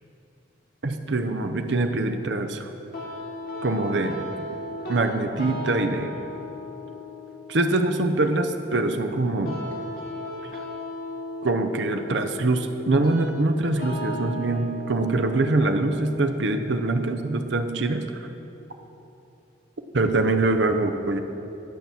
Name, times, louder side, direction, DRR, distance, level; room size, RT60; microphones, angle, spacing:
voice 1, 0.8-2.7 3.6-4.3 4.9-6.1 7.5-9.6 11.4-18.3 19.9-21.2, right 2 dB, 70° right, 6 dB, 0.7 m, -24 dB
sound 1, 2.9-17.9, left 1 dB, 50° left, 1.7 m, -37 dB
11.5 x 6.0 x 7.0 m, 2.9 s
head